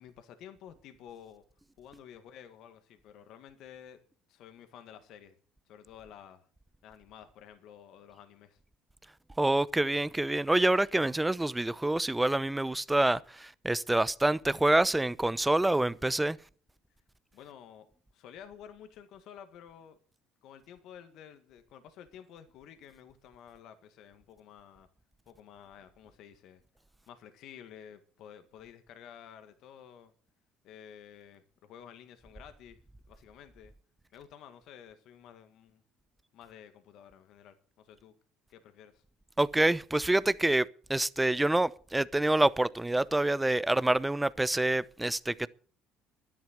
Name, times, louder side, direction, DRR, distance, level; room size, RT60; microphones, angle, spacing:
voice 1, 0.0-1.4 1.8-4.0 4.3-5.4 5.7-6.5 6.8-8.6 17.3-20.0 20.4-24.9 25.3-26.6 27.1-30.1 30.6-32.8 33.1-33.7 34.1-35.8 36.3-38.1 38.5-39.0, left 9 dB, 65° left, 1.7 m, -52 dB
voice 2, 9.4-16.4 39.4-45.5, right 2 dB, 10° right, 0.7 m, -27 dB
12.0 x 10.5 x 7.8 m
supercardioid pair, 75°, 0 cm